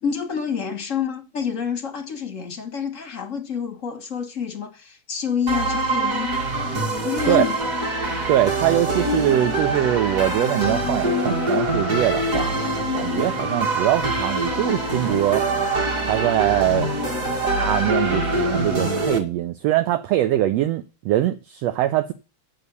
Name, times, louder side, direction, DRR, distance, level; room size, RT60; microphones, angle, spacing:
voice 1, 0.0-6.5 7.0-7.6, left 7 dB, 40° left, 1.2 m, -28 dB
sound 1, 5.5-19.2, right 1 dB, 35° right, 1.7 m, -24 dB
voice 2, 8.3-15.5 16.1-16.9 17.6-22.1, right 13 dB, 75° right, 1.6 m, -22 dB
8.5 x 7.1 x 8.3 m
omnidirectional pair, 3.5 m